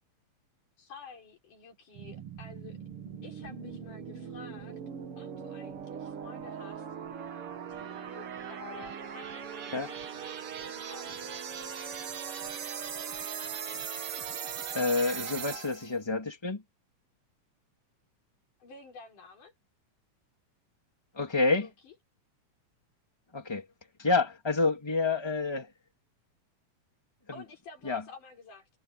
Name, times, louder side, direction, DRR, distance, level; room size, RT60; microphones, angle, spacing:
voice 1, 0.8-2.8 3.2-4.8 5.2-6.9 7.7-11.2 18.6-19.5 21.5-21.9 27.3-28.7, left 4 dB, 90° left, 7.1 m, -51 dB
sound 1, 1.9-16.0, right 7 dB, 50° right, 2.3 m, -40 dB
voice 2, 14.7-16.6 21.1-21.7 23.3-23.7 24.0-25.7 27.3-27.4 27.8-28.0, left 3 dB, 10° left, 2.5 m, -28 dB
omnidirectional pair, 3.5 m